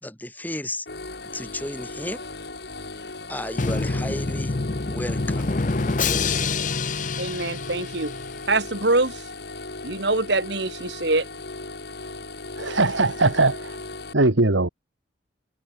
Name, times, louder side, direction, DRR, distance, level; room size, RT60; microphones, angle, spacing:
voice 1, 0.0-0.9 1.3-2.2 3.3-4.5 4.8-5.6 6.0-6.4, left 1 dB, 10° left, 2.8 m, -33 dB
sound 1, 0.9-14.1, left 2 dB, 55° left, 2.4 m, -37 dB
Drum, 3.6-8.4, left 3 dB, 40° left, 0.7 m, -26 dB
voice 2, 7.2-8.1 8.5-9.2 9.8-11.3, right 2 dB, 65° right, 2.9 m, -24 dB
voice 3, 12.6-13.8 14.1-14.7, right 2 dB, 80° right, 1.9 m, -20 dB
head